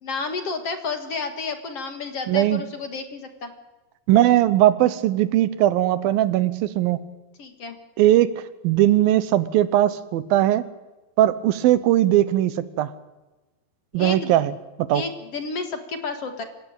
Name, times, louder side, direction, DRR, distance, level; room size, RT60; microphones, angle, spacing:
voice 1, 0.0-3.5 7.4-7.8 13.9-14.3 14.9-16.4, left 4 dB, 50° left, 7 dB, 2.5 m, -31 dB
voice 2, 2.3-2.6 4.1-7.0 8.0-10.6 11.2-12.9 13.9-14.5 14.8-15.0, right 13 dB, 80° right, 15 dB, 2.7 m, -19 dB
26.5 x 16.5 x 9.0 m, 1.1 s
omnidirectional pair, 4.1 m